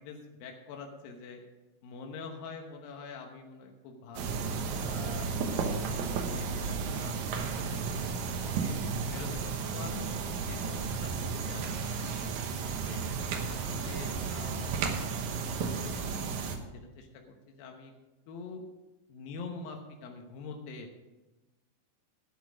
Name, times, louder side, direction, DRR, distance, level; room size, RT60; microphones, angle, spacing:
voice 1, 0.0-1.4 1.8-4.4 4.8-8.7 9.1-10.1 10.4-13.0 13.5-16.3 16.7-17.9 18.3-18.6 19.1-20.9, left 4 dB, 90° left, 2 dB, 3.0 m, -46 dB
sound 1, 4.1-16.6, right 5 dB, 65° right, 2.3 m, -33 dB
11.5 x 10.5 x 5.0 m, 1.1 s
omnidirectional pair, 4.0 m